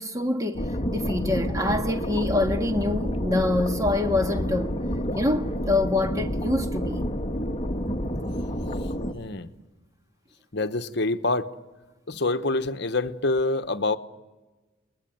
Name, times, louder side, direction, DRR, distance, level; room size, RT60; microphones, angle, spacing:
voice 1, 0.0-4.8 5.1-7.0, left 2 dB, 15° right, 1.6 m, -26 dB
sound 1, 0.5-9.1, equal, 30° left, 1.4 m, -29 dB
voice 2, 9.1-9.5 10.5-11.5 12.1-14.0, left 2 dB, 55° left, 1.1 m, -26 dB
30.0 x 21.0 x 9.2 m
head